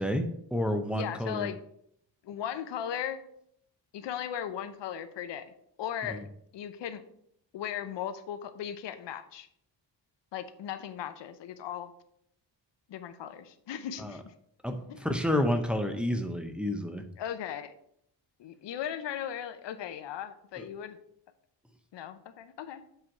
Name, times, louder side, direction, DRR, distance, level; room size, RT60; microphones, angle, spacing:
voice 1, 0.0-1.5 6.1-6.2 14.0-14.2 14.6-17.0 20.6-20.7, left 1 dB, ahead, 5 dB, 0.5 m, -30 dB
voice 2, 0.9-1.6 2.2-3.2 3.9-5.5 5.8-6.2 6.5-7.0 7.5-9.5 10.3-11.9 12.9-14.2 14.9-15.1 17.2-17.7 18.4-21.0 21.9-22.8, left 9 dB, 75° left, 10 dB, 0.8 m, -37 dB
7.7 x 4.6 x 4.5 m, 0.72 s
wide cardioid pair, 150°, 43 cm